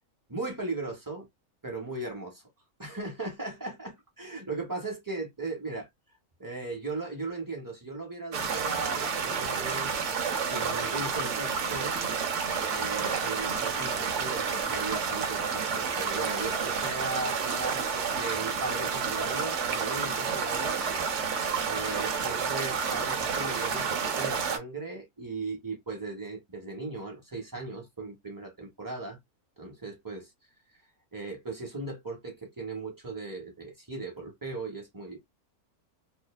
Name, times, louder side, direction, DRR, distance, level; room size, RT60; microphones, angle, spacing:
voice 1, 0.3-1.3 1.6-2.4 2.8-5.9 6.4-10.1 10.4-12.0 12.7-21.3 21.7-29.2 29.6-30.2 31.1-35.2, right 3 dB, 30° right, 0.3 m, -37 dB
sound 1, 8.3-24.6, right 6 dB, 65° right, 0.8 m, -30 dB
2.7 x 2.0 x 2.2 m
omnidirectional pair, 1.6 m